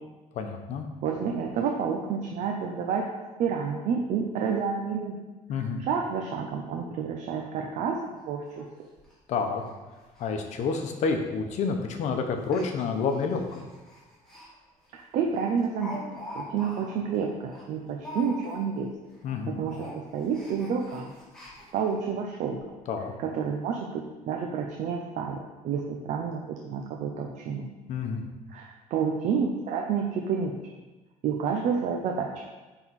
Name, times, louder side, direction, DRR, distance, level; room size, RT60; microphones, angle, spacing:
voice 1, 0.3-0.9 5.5-5.8 9.3-9.6 10.2-13.6 19.2-19.5 22.9-23.1 27.9-28.2, left 5 dB, 55° left, 5 dB, 0.9 m, -29 dB
voice 2, 1.0-3.1 3.4-5.2 5.6-8.0 8.3-8.7 14.9-18.9 19.5-21.1 21.7-22.6 23.2-27.7 28.5-30.5 31.2-32.3, right 6 dB, 60° right, 1 dB, 0.7 m, -29 dB
Speech, 7.7-7.8 8.1-8.2 8.6-8.7 9.0-9.1 9.6-9.7 10.0-10.3 10.5-10.6 11.4-11.6 12.4-14.5 14.8-15.0 15.3-18.9 19.1-19.4 19.7-21.9 22.5-22.6 22.9-23.0, left 1 dB, 5° left, 1.7 m, -44 dB
9.0 x 3.9 x 4.2 m, 1.2 s
cardioid pair, 165°, 14 cm